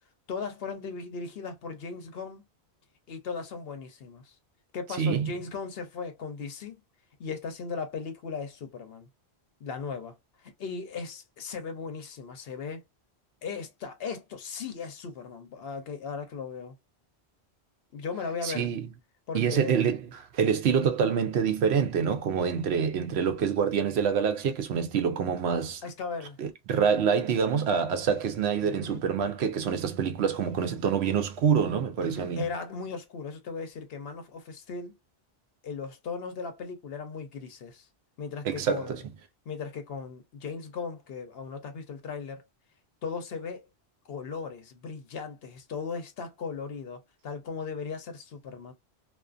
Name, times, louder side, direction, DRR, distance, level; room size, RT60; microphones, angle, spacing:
voice 1, 0.3-2.4 3.1-4.3 4.7-6.8 7.2-9.1 9.6-12.8 13.4-16.8 17.9-18.7 19.3-19.8 25.8-26.4 28.6-29.0 32.0-35.0 35.6-37.9 38.2-39.0 39.5-42.4 43.0-43.7 44.1-48.7, left 5 dB, 70° left, 0.8 m, -37 dB
voice 2, 5.0-5.3 18.4-18.9 19.3-25.8 26.4-32.4 38.4-39.0, right 7 dB, 75° right, 0.8 m, -26 dB
2.4 x 2.4 x 2.4 m
omnidirectional pair, 1.1 m